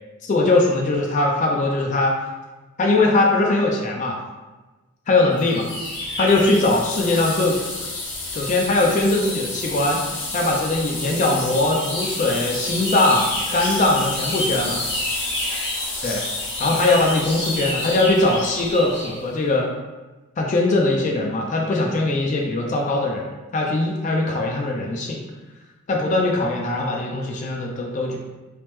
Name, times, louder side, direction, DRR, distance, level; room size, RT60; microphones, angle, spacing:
voice 1, 0.2-2.2 2.8-4.2 5.1-5.7 6.2-7.6 8.3-10.0 10.3-13.3 13.5-14.8 16.0-16.2 16.6-19.7 20.4-23.3 23.5-25.2 25.9-28.2, left 2 dB, 35° left, 0 dB, 0.3 m, -20 dB
sound 1, 5.4-19.2, left 2 dB, 55° left, 0.7 m, -29 dB
3.2 x 2.0 x 3.0 m, 1.2 s
head